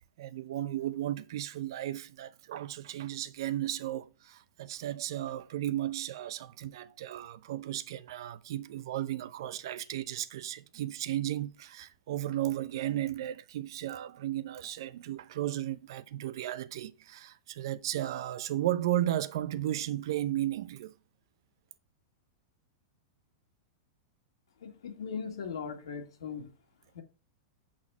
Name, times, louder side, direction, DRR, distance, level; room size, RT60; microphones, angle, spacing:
voice 1, 0.2-20.9, right 13 dB, 70° right, 0.6 m, -34 dB
voice 2, 24.6-26.5 26.9-27.0, left 6 dB, 85° left, 2.0 m, -39 dB
7.3 x 4.3 x 6.0 m
hypercardioid pair, 135°, 3 cm